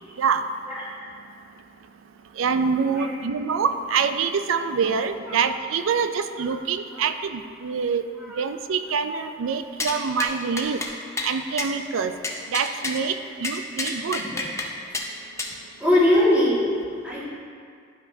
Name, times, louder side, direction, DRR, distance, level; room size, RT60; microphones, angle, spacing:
voice 1, 2.4-8.0 8.4-10.8 11.2-12.1 12.5-14.2, right 6 dB, 80° right, 9 dB, 0.4 m, -25 dB
sound 1, 9.8-9.9 10.2-10.3 10.6-10.9 11.2-11.3 11.6-11.7 12.2-13.0 13.4-14.7 14.9-15.1 15.4-15.5, left 3 dB, 15° left, 0.5 m, -29 dB
voice 2, 15.8-16.6 17.0-17.3, left 1 dB, 5° right, -9 dB, 1.9 m, -21 dB
11.5 x 5.2 x 2.7 m, 2.2 s
head